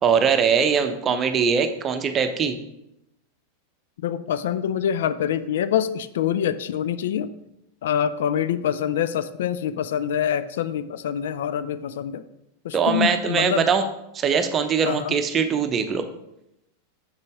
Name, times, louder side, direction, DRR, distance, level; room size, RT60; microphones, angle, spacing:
voice 1, 0.0-2.6 12.7-13.8 14.1-16.0, right 6 dB, 25° right, 8 dB, 0.8 m, -21 dB
voice 2, 4.0-7.3 7.8-12.2 12.6-13.7 14.8-15.2, left 9 dB, 60° left, 13 dB, 0.4 m, -25 dB
7.0 x 6.7 x 3.6 m, 0.83 s
figure-of-eight pair, 90°, 0 cm